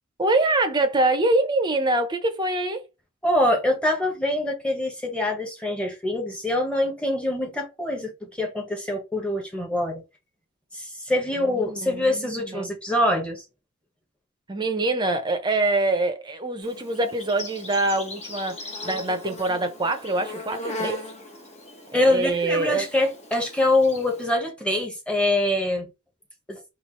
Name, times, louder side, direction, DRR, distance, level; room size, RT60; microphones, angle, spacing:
voice 1, 0.2-2.8 11.4-12.7 14.5-21.0 21.9-22.9, right 2 dB, 20° right, 0.8 m, -24 dB
voice 2, 3.2-10.0 10.7-13.4 21.9-25.9 26.5-26.6, left 1 dB, 5° left, 1.4 m, -24 dB
Insect, 16.6-24.2, left 2 dB, 30° left, 1.2 m, -38 dB
4.5 x 2.6 x 4.2 m
head